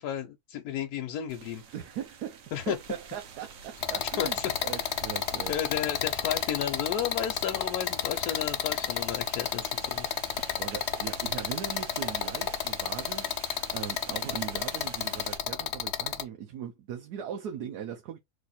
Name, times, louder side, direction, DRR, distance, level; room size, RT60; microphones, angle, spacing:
voice 1, 0.0-1.6 2.5-2.8 4.2-4.9 5.5-10.1 10.4-10.6, left 9 dB, 90° left, 1.2 m, -33 dB
sound 1, 1.3-15.4, right 6 dB, 65° right, 1.2 m, -47 dB
voice 2, 1.7-5.5 10.6-18.2, right 9 dB, 90° right, 1.3 m, -39 dB
sound 2, 3.8-16.2, left 9 dB, 60° left, 0.7 m, -31 dB
3.4 x 3.2 x 4.0 m
omnidirectional pair, 1.6 m